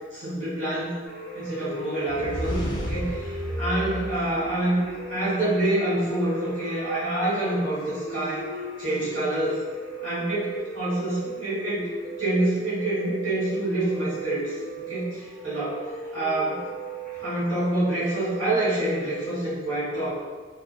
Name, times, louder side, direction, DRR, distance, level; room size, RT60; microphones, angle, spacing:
voice 1, 0.1-1.0 1.3-4.8 5.1-8.5 8.8-9.6 10.0-11.9 12.2-15.8 16.1-16.6 17.2-20.1, right 1 dB, 80° right, -13 dB, 1.5 m, -27 dB
sound 1, 1.1-19.3, right 3 dB, 30° right, 1.4 m, -37 dB
sound 2, 2.1-5.0, equal, 25° left, 0.4 m, -32 dB
2.7 x 2.1 x 2.5 m, 1.4 s
head